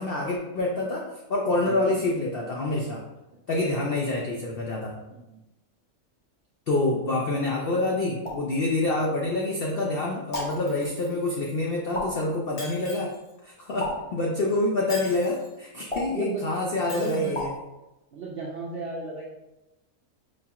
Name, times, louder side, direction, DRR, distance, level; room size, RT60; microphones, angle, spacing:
voice 1, 0.0-3.0 3.5-5.0 6.7-13.1 13.4-17.5, left 2 dB, 80° left, -1 dB, 0.5 m, -27 dB
voice 2, 1.6-2.0 5.1-5.4 16.1-16.5 16.9-17.4 18.1-19.2, right 3 dB, 75° right, -3 dB, 0.5 m, -35 dB
sound 1, 8.2-8.6 10.3-10.7 11.9-12.3 13.8-14.2 15.9-16.3 17.3-17.6, left 1 dB, 30° left, 0.7 m, -33 dB
Shatter, 10.3-11.3 12.6-13.3 14.9-15.5 16.9-17.5, left 2 dB, 55° left, 1.1 m, -42 dB
4.8 x 2.3 x 2.8 m, 0.99 s
omnidirectional pair, 1.5 m